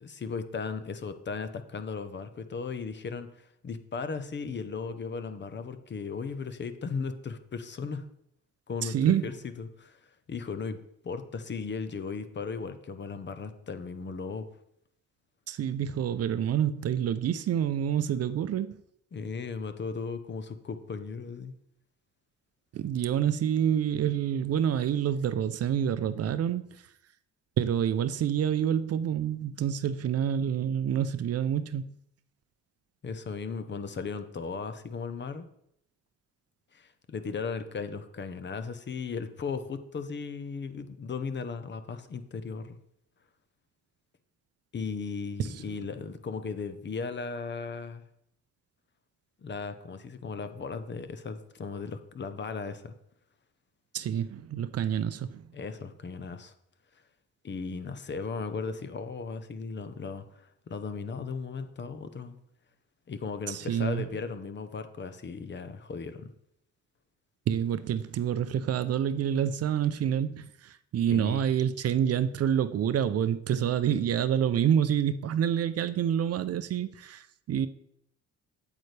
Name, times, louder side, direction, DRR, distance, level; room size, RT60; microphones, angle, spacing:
voice 1, 0.0-8.0 8.7-8.9 9.2-10.0 10.3-10.8 11.0-14.5 19.1-21.5 33.0-35.4 36.7-42.8 44.7-48.0 49.4-52.9 55.5-56.5 57.4-62.4 63.1-66.3 71.1-71.4, left 5 dB, 35° left, 0.8 m, -36 dB
voice 2, 8.8-9.3 15.5-18.8 22.7-26.9 27.6-31.9 45.4-45.7 53.9-55.5 63.5-64.1 67.5-77.7, right 9 dB, 55° right, 0.6 m, -28 dB
8.5 x 8.1 x 3.3 m
cardioid pair, 90°, 30 cm